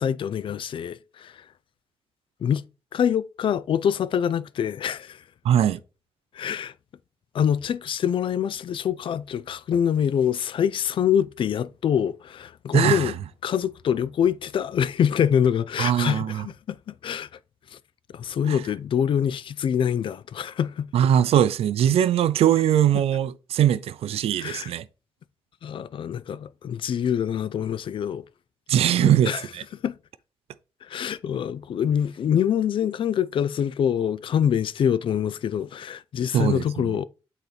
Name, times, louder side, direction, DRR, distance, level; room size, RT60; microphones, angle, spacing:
voice 1, 0.0-1.4 2.4-2.6 2.9-5.2 6.3-6.7 7.3-13.1 13.4-17.3 17.7-17.8 18.1-20.9 24.4-24.7 25.6-28.2 29.0-29.5 29.8-30.0 30.9-37.1, left 8 dB, 60° left, 0.4 m, -25 dB
voice 2, 5.4-5.8 12.7-13.1 15.8-16.5 18.5-18.6 20.9-24.8 28.7-29.6 36.3-36.6, right 10 dB, 90° right, 0.4 m, -21 dB
8.2 x 3.9 x 3.4 m
cardioid pair, 115°, 10 cm